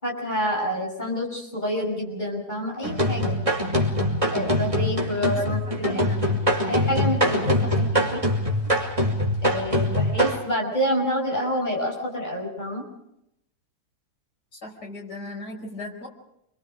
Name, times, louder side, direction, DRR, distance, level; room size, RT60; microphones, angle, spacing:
voice 1, 0.0-3.4 4.3-6.1 6.6-8.2 9.4-12.8, equal, 25° left, -1 dB, 6.0 m, -28 dB
sound 1, 2.8-10.4, equal, 20° right, 3.0 m, -23 dB
voice 2, 5.3-6.2 7.6-7.8 14.6-16.1, left 2 dB, 85° left, -1 dB, 5.8 m, -38 dB
28.0 x 22.5 x 5.1 m, 0.80 s
omnidirectional pair, 1.7 m